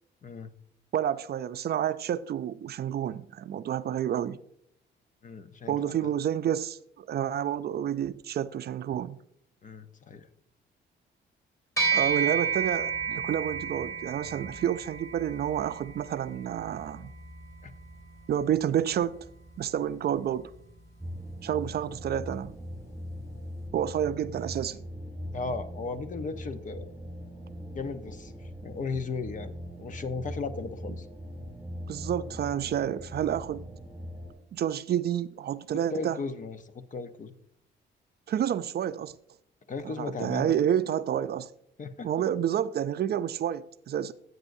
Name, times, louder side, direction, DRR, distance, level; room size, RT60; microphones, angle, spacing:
voice 1, 0.9-4.4 5.7-9.2 11.9-17.1 18.3-19.2 19.6-20.5 21.4-22.5 23.7-24.8 31.9-33.7 34.5-36.2 38.3-39.2 39.8-41.5 42.0-44.1, right 10 dB, 55° right, 0.5 m, -29 dB
voice 2, 5.2-6.1 9.6-10.3 17.6-17.7 25.3-26.9 27.7-29.5 29.8-31.1 35.9-37.3 39.7-40.5 41.8-42.1, left 4 dB, 40° left, 0.8 m, -36 dB
sound 1, 11.8-21.4, right 6 dB, 15° left, 3.0 m, -33 dB
sound 2, 21.0-34.3, equal, 5° right, 2.2 m, -41 dB
14.0 x 8.0 x 2.7 m
cardioid pair, 90°, 20 cm